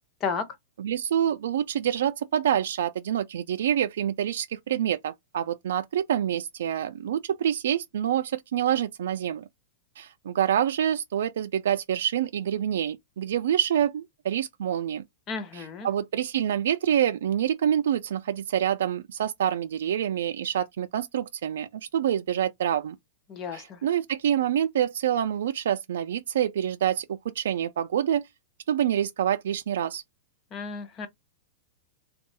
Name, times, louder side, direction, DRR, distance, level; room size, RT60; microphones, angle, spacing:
voice 1, 0.8-9.4 10.0-15.0 15.5-23.0 23.5-28.2 28.7-30.0, right 10 dB, 75° right, 0.3 m, -27 dB
voice 2, 15.3-15.9 23.3-23.8 30.5-31.1, left 5 dB, 20° left, 0.7 m, -32 dB
3.5 x 2.3 x 4.1 m
supercardioid pair, 170°, 0 cm